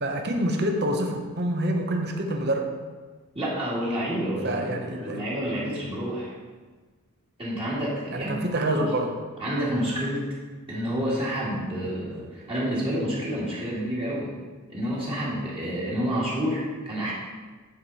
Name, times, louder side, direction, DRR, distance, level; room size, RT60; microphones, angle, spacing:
voice 1, 0.0-2.7 4.4-5.2 8.1-9.1, right 1 dB, 50° right, 3 dB, 0.9 m, -26 dB
voice 2, 3.3-6.3 7.4-8.4 8.7-8.9 9.4-10.2 10.7-14.3 14.7-17.1, equal, 25° right, -8 dB, 2.0 m, -29 dB
9.7 x 4.6 x 4.1 m, 1.4 s
head